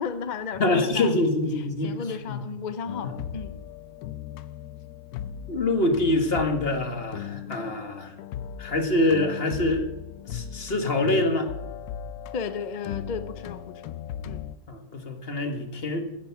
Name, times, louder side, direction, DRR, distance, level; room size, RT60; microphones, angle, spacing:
voice 1, 0.0-3.6 7.4-7.7 12.3-14.0 14.3-14.5, left 6 dB, 55° left, 12 dB, 0.5 m, -35 dB
voice 2, 0.6-2.0 2.3-2.5 3.0-3.1 5.5-8.1 8.6-9.8 10.3-11.5 14.7-16.0, left 2 dB, 40° left, 5 dB, 1.7 m, -25 dB
sound 1, 2.9-14.5, left 9 dB, 80° left, 1.1 m, -38 dB
15.5 x 9.2 x 5.8 m, 0.94 s
omnidirectional pair, 1.6 m